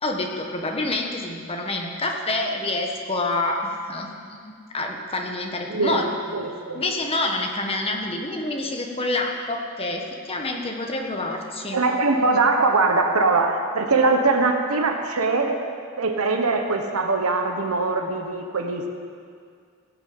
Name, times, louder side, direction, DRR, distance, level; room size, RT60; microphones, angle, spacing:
voice 1, 0.0-4.1 4.7-6.1 6.7-11.8, left 2 dB, 25° left, 2 dB, 1.4 m, -27 dB
voice 2, 5.7-6.0 6.3-6.8 11.7-15.6 16.0-18.9, right 3 dB, 80° right, 4 dB, 1.2 m, -22 dB
17.0 x 7.0 x 7.9 m, 2.2 s
head